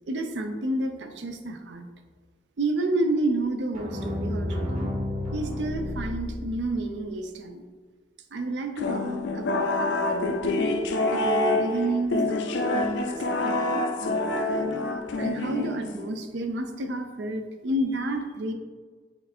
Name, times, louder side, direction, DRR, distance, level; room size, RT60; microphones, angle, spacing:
voice 1, 0.1-1.9 2.6-4.9 5.3-7.6 8.3-9.1 9.3-10.4 11.1-18.5, right 2 dB, 70° right, 6 dB, 0.5 m, -30 dB
sound 1, 3.7-6.9, left 1 dB, 40° right, 1.4 m, -31 dB
sound 2, 8.8-16.2, left 2 dB, 70° left, 0.4 m, -26 dB
4.5 x 2.5 x 4.2 m, 1.5 s
head